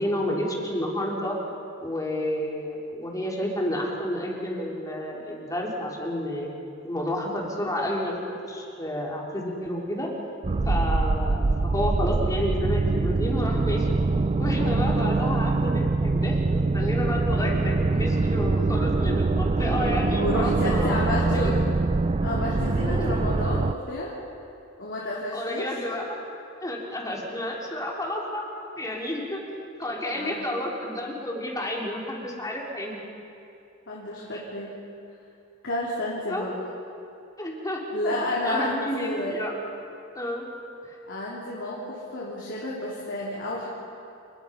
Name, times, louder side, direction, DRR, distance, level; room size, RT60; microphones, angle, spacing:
voice 1, 0.0-1.4 1.8-6.5 6.8-10.1 10.7-14.0 14.4-21.5 22.8-23.2 25.3-26.0 26.6-28.4 28.8-29.4 29.8-33.0 34.3-34.4 36.3-36.7 37.4-38.2 38.4-39.5 40.2-40.4 40.8-41.0, left 1 dB, 15° left, -2 dB, 3.7 m, -30 dB
sound 1, 10.4-23.7, right 3 dB, 30° right, 0.4 m, -24 dB
voice 2, 20.1-21.6 22.2-24.1 24.8-25.7 30.1-30.5 33.9-34.7 35.6-36.6 37.9-39.5 41.1-43.7, left 1 dB, 60° left, -5 dB, 3.5 m, -30 dB
29.0 x 20.0 x 5.4 m, 2.6 s
head